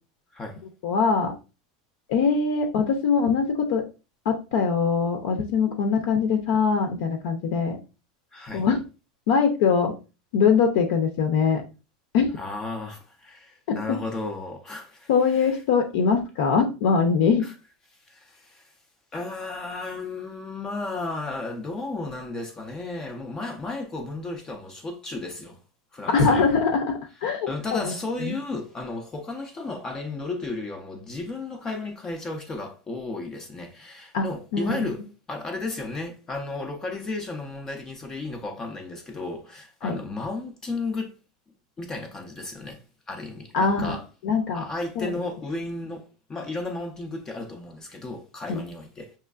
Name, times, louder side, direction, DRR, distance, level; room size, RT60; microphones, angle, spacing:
voice 1, 0.3-0.6 8.3-8.7 12.4-15.5 17.4-17.5 18.1-18.7 19.1-25.6 25.9-26.5 27.5-35.0 35.3-41.1 41.8-44.1 44.5-49.1, left 3 dB, 15° left, 0.5 m, -34 dB
voice 2, 0.8-1.3 2.1-3.8 4.3-7.8 8.5-8.8 9.3-9.9 10.3-11.6 12.1-12.3 13.7-13.8 15.1-17.4 26.1-27.9 28.2-28.3 34.1-34.2 34.5-34.9 39.8-40.0 43.5-43.9 44.2-44.7 45.0-45.1 48.5-48.6, left 5 dB, 55° left, 0.6 m, -22 dB
5.5 x 3.0 x 2.4 m
supercardioid pair, 170°, 4 cm